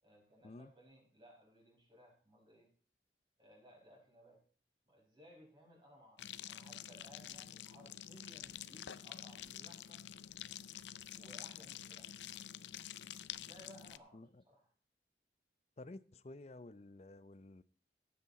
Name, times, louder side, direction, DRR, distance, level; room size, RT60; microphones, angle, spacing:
voice 1, 0.0-2.7 3.4-4.4 4.8-10.0 10.3-10.5 11.1-12.2 13.3-14.2 14.5-14.7, equal, 25° right, 5.2 m, -61 dB
sound 1, 6.2-14.0, left 10 dB, 85° left, 0.5 m, -48 dB
voice 2, 14.1-14.4 15.8-17.6, left 2 dB, 35° left, 0.5 m, -52 dB
16.0 x 8.7 x 4.1 m
head